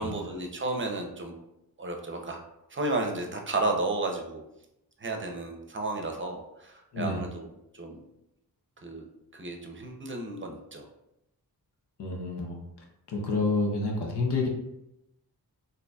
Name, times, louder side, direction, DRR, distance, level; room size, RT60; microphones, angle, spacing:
voice 1, 0.0-1.4 1.8-2.4 2.7-4.4 5.0-8.0 8.8-9.1 9.3-10.9, right 2 dB, 30° right, 3 dB, 0.6 m, -33 dB
voice 2, 12.0-12.6 13.1-14.5, left 3 dB, 80° left, 1 dB, 0.8 m, -28 dB
3.9 x 2.7 x 2.3 m, 0.86 s
wide cardioid pair, 65°, 40 cm